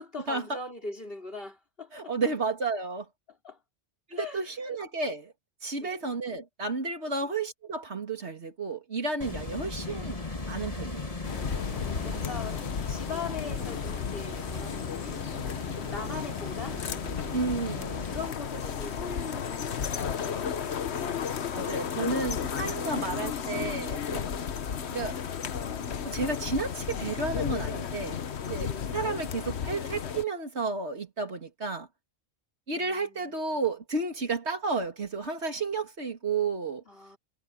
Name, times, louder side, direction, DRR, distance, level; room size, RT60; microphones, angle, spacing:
voice 1, 0.0-2.1 3.3-3.6 4.1-4.5 5.8-6.1 12.0-15.2 15.7-16.8 18.0-20.5 28.6-28.9 32.7-33.6 36.9-37.2, left 4 dB, 60° left, 4.6 m, -41 dB
voice 2, 1.9-3.1 4.1-5.3 5.6-10.2 10.5-11.1 17.3-18.0 21.5-24.3 24.9-25.2 26.0-28.2 28.4-31.9 32.7-36.8, right 4 dB, 80° right, 2.8 m, -32 dB
sound 1, 9.2-18.3, left 3 dB, 35° left, 1.8 m, -38 dB
sound 2, 11.2-30.2, left 7 dB, 75° left, 1.2 m, -33 dB
omnidirectional pair, 1.1 m